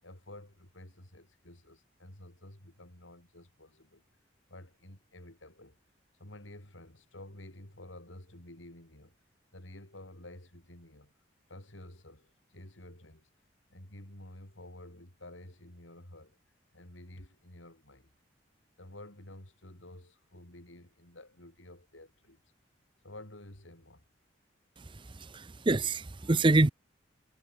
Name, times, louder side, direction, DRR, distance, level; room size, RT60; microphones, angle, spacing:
voice 1, 0.0-4.0 4.5-5.8 6.2-9.1 9.5-11.1 11.5-13.3 13.7-16.4 16.7-18.1 18.8-22.4 23.0-24.1, left 1 dB, 85° left, 5.2 m, -51 dB
voice 2, 25.2-26.7, right 2 dB, 25° right, 0.6 m, -25 dB
head